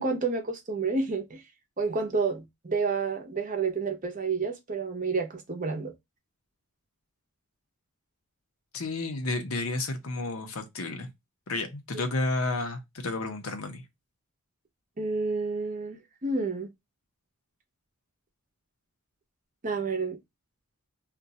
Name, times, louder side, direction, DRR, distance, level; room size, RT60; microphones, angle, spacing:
voice 1, 0.0-1.4 1.8-5.9 15.0-16.7 19.6-20.2, right 4 dB, 35° right, 0.8 m, -30 dB
voice 2, 8.7-11.1 11.5-13.8, left 2 dB, 75° left, 0.8 m, -31 dB
2.5 x 2.3 x 4.0 m
head